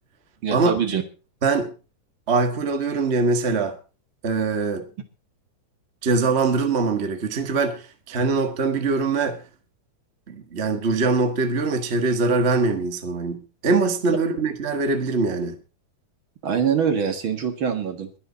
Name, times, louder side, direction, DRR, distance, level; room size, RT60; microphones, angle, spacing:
voice 1, 0.4-1.0 14.1-14.2 16.4-18.1, right 7 dB, 50° right, 2.2 m, -24 dB
voice 2, 1.4-1.7 2.3-3.8 4.2-4.9 6.0-9.4 10.3-15.6, right 4 dB, 30° right, 1.3 m, -23 dB
22.0 x 8.7 x 4.1 m
omnidirectional pair, 3.3 m